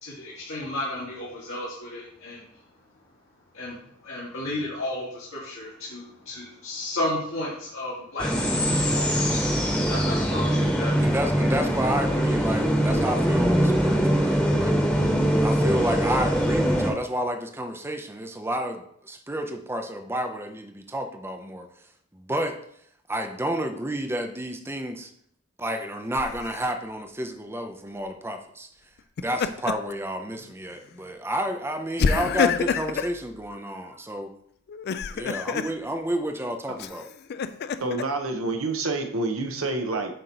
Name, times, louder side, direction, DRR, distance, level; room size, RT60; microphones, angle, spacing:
voice 1, 0.0-2.6 3.5-9.5 9.8-11.0, left 1 dB, 70° left, -7 dB, 1.7 m, -33 dB
sound 1, 8.2-16.9, equal, 5° left, 1.2 m, -22 dB
voice 2, 11.0-14.8 15.4-21.7 22.1-22.6 23.1-25.1 25.6-28.7 29.2-34.3 35.1-37.1, equal, 10° right, 5 dB, 0.5 m, -30 dB
Laughter, 26.1-26.7 29.0-29.9 30.3-30.5 32.0-33.1 34.7-35.7 36.8-38.0, left 6 dB, 50° left, 0.3 m, -27 dB
voice 3, 37.8-40.1, right 2 dB, 80° right, 5 dB, 0.9 m, -28 dB
7.6 x 3.0 x 5.2 m, 0.68 s
head